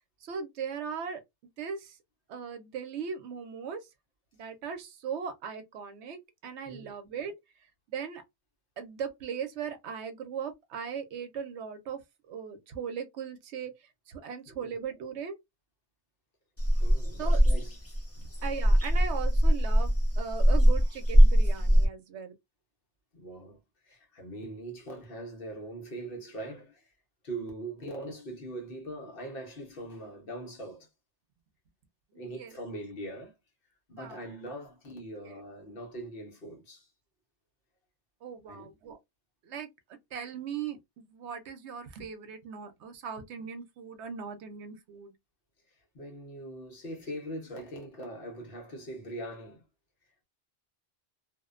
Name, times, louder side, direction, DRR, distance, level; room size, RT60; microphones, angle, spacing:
voice 1, 0.2-1.2 1.6-2.0 2.3-3.8 4.4-7.3 7.9-8.2 8.8-12.0 12.3-13.7 14.1-15.3 17.2-17.6 18.2-22.3 32.1-32.6 34.0-34.3 35.2-35.4 38.2-39.0 39.4-39.7 40.1-45.1, right 7 dB, 85° right, 0.9 m, -38 dB
sound 1, 16.6-21.9, equal, 20° left, 0.4 m, -22 dB
voice 2, 16.8-17.8 23.1-23.6 23.8-26.9 27.2-30.9 32.1-33.4 33.9-36.9 38.5-38.7 45.9-49.6, right 1 dB, 60° left, 1.0 m, -41 dB
2.5 x 2.1 x 2.4 m
omnidirectional pair, 1.1 m